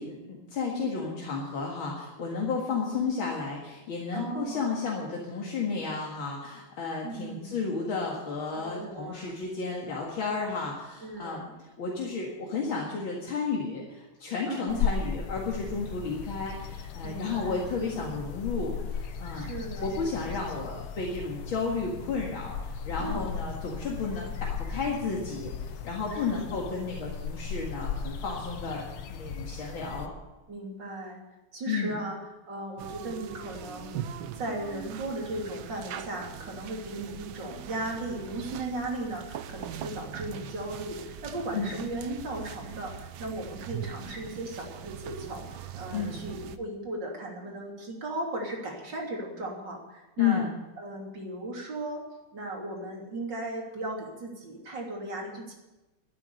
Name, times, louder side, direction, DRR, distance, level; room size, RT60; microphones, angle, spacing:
voice 1, 0.0-19.5 19.8-30.1 31.7-32.0 41.5-41.7 45.9-46.2 50.2-50.5, left 4 dB, 70° left, -2 dB, 2.8 m, -32 dB
voice 2, 4.1-4.6 7.0-7.6 8.5-9.4 11.0-11.5 14.5-14.9 17.0-17.6 19.3-19.9 23.0-23.3 26.1-26.6 30.5-31.2 31.5-32.2 32.5-34.0 34.3-50.5 50.8-52.0 52.3-55.5, right 1 dB, 55° right, -1 dB, 3.9 m, -37 dB
sound 1, 14.7-30.1, left 6 dB, 90° left, 1.9 m, -36 dB
sound 2, 32.8-46.6, right 9 dB, 75° right, 1.6 m, -41 dB
13.0 x 9.7 x 9.5 m, 1.1 s
omnidirectional pair, 2.3 m